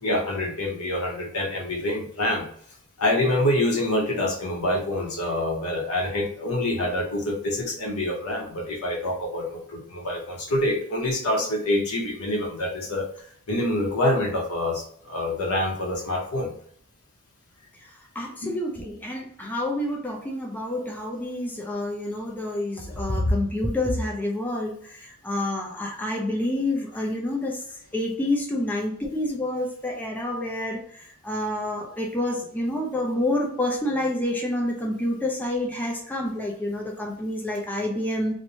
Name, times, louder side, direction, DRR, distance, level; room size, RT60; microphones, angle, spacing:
voice 1, 0.0-2.5 3.0-13.1 13.5-16.5 18.4-18.5, left 1 dB, 80° left, 1 dB, 0.8 m, -26 dB
voice 2, 17.8-27.6 27.9-38.3, left 1 dB, 10° left, -1 dB, 0.4 m, -28 dB
3.0 x 2.1 x 2.7 m, 0.62 s
head